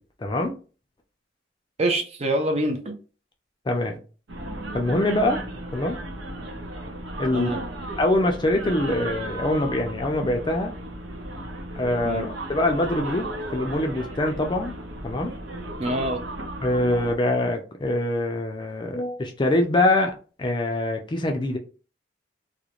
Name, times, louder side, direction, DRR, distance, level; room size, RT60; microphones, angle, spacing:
voice 1, 0.2-0.5 3.7-4.0 4.7-5.4 5.7-6.0 7.2-7.5 8.0-10.7 11.7-14.7 15.0-15.3 16.6-21.6, left 1 dB, 25° left, 0.4 m, -24 dB
voice 2, 1.8-2.9 7.3-7.6 12.0-12.3 15.8-16.2, right 1 dB, 35° right, 0.5 m, -25 dB
sound 1, 4.3-17.2, right 1 dB, 85° right, 0.6 m, -35 dB
2.4 x 2.1 x 2.8 m
head